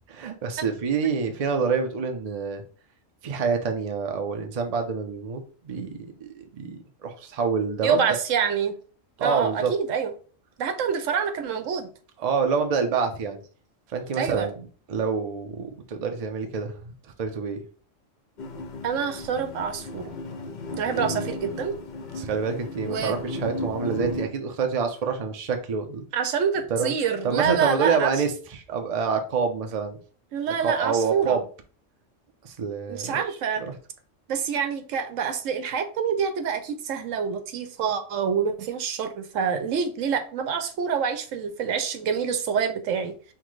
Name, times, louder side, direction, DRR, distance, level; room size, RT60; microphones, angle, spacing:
voice 1, 0.1-2.6 3.2-8.0 9.2-9.7 12.2-13.4 13.9-16.9 17.2-17.6 21.1-21.2 22.1-26.0 26.7-26.9 27.2-30.0 30.6-31.4 32.4-33.2 33.7-33.8, right 5 dB, 45° right, 5 dB, 0.5 m, -27 dB
voice 2, 7.8-8.8 9.2-10.1 10.6-11.9 14.1-14.5 18.8-20.2 20.8-21.7 22.8-23.2 26.1-28.1 30.3-31.4 32.9-33.6 34.3-43.1, right 7 dB, 80° right, 7 dB, 1.0 m, -26 dB
sound 1, 18.4-24.3, left 2 dB, 50° left, 0.6 m, -35 dB
5.8 x 2.1 x 3.1 m, 0.40 s
omnidirectional pair, 1.3 m